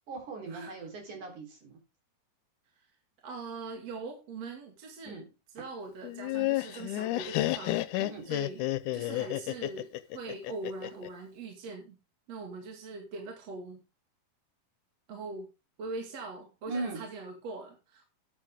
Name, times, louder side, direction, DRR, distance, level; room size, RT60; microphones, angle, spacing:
voice 1, 0.1-1.8 5.1-5.2 8.0-8.3 16.7-17.0, right 3 dB, 70° right, 2 dB, 5.3 m, -39 dB
voice 2, 3.2-5.2 5.5-7.8 8.2-12.0 12.3-13.8 15.1-15.5 15.8-18.1, right 3 dB, 55° right, 2 dB, 3.2 m, -41 dB
Laughter, 6.0-11.1, left 16 dB, 80° left, 2.1 m, -31 dB
13.0 x 9.8 x 3.6 m, 0.28 s
omnidirectional pair, 3.6 m